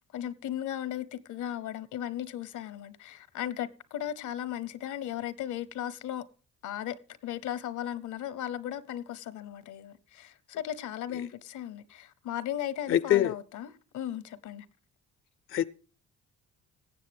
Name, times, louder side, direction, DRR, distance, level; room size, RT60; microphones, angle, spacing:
voice 1, 0.1-6.3 6.6-7.0 7.2-14.7, left 11 dB, 75° left, 0.9 m, -36 dB
voice 2, 12.9-13.3 15.5-15.7, left 11 dB, 45° left, 0.5 m, -24 dB
17.5 x 7.4 x 3.5 m
cardioid pair, 90°, 30 cm